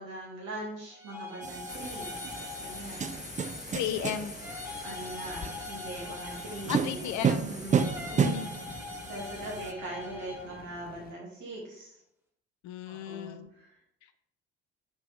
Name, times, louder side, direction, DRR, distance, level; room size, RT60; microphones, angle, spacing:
voice 1, 0.0-2.2 2.6-3.6 4.8-7.1 7.4-7.9 9.1-12.0 12.9-13.8, right 2 dB, 60° right, -3 dB, 2.7 m, -41 dB
sound 1, 0.9-3.7 4.4-7.2 7.7-10.6, left 3 dB, 5° right, 2.8 m, -43 dB
sound 2, 1.4-9.7, right 6 dB, 20° right, 0.5 m, -33 dB
Subway metro underground, 1.7-11.1, left 8 dB, 30° left, 0.4 m, -46 dB
voice 2, 3.7-4.3 6.7-7.5 8.0-8.5 12.6-13.5, left 9 dB, 55° left, 10 dB, 0.7 m, -34 dB
8.9 x 5.0 x 3.5 m, 0.74 s
figure-of-eight pair, 45°, 34 cm